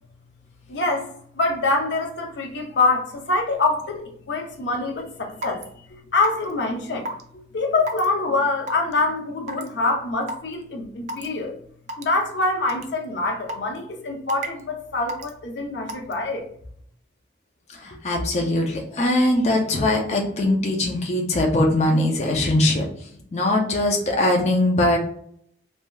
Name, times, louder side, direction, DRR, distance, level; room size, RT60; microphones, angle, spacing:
voice 1, 0.7-5.6 6.1-7.1 7.5-11.6 12.0-16.5, left 3 dB, 90° left, 0.6 m, -25 dB
Raindrop / Water tap faucet / Drip, 5.4-5.6 6.2-6.5 7.1-7.2 7.9-8.1 8.7-8.9 9.5-9.7 10.3-10.4 11.1-11.3 11.9-12.0 12.7-12.8 13.5-13.8 14.3-14.6 15.1-15.3 15.9-16.1, right 1 dB, 40° right, 0.4 m, -30 dB
voice 2, 17.7-22.9 23.3-25.0, left 1 dB, 40° left, 0.5 m, -21 dB
3.2 x 2.7 x 2.3 m
head